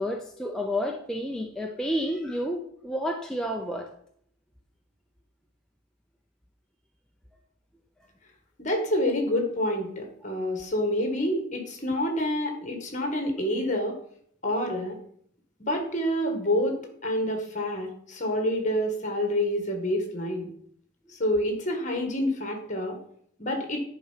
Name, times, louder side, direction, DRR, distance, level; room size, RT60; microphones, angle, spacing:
voice 1, 0.0-3.9, equal, 5° left, 1 dB, 0.6 m, -30 dB
voice 2, 8.6-14.0 14.4-14.9 15.6-16.8 17.0-20.5 21.1-23.0 23.4-23.8, left 1 dB, 35° left, 3 dB, 1.9 m, -27 dB
10.5 x 4.6 x 5.7 m, 0.65 s
head